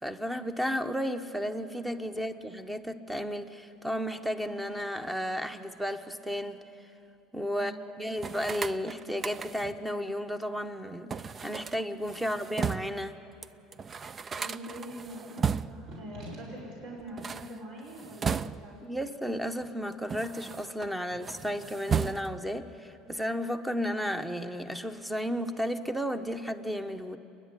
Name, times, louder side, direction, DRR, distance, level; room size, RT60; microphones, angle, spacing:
voice 1, 0.0-6.6 7.3-7.7 8.0-11.1 11.4-13.2 18.8-27.2, equal, 5° right, 9 dB, 0.9 m, -33 dB
voice 2, 7.6-8.0 12.2-12.3 14.3-18.8, right 1 dB, 60° right, -3 dB, 5.7 m, -43 dB
sound 1, 8.2-9.8 11.1-13.0 13.4-13.5 13.7-15.9 17.0-18.9 19.6-20.9 21.2-22.5, right 6 dB, 25° right, 0.4 m, -35 dB
29.5 x 10.5 x 9.7 m, 2.8 s
supercardioid pair, 130°, 0 cm